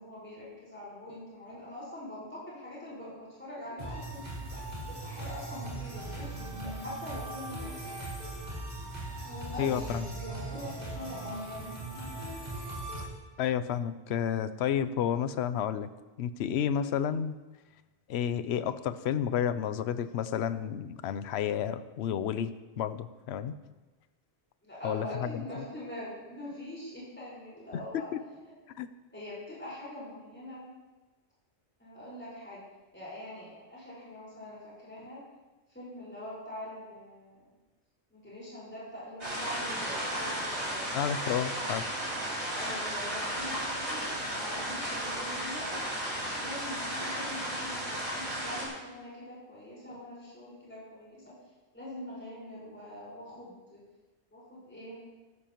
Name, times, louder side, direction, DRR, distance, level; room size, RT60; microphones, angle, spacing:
voice 1, 0.0-4.3 4.9-8.1 9.2-11.7 24.6-28.1 29.1-30.6 31.8-32.6 32.9-35.2 35.7-37.5 38.1-40.9 42.6-45.7 46.1-51.3 51.7-53.8 54.3-55.0, left 1 dB, 10° left, -8 dB, 4.9 m, -43 dB
sound 1, 3.8-13.0, right 2 dB, 40° right, 4.1 m, -39 dB
voice 2, 9.6-10.1 13.4-15.9 16.2-17.3 18.1-23.5 24.8-25.4 27.7-28.2 28.8-28.9 40.9-41.9, left 9 dB, 75° left, 13 dB, 0.9 m, -31 dB
sound 2, 39.2-48.7, equal, 80° right, 5.2 m, -34 dB
14.0 x 14.0 x 3.0 m, 1.1 s
omnidirectional pair, 1.1 m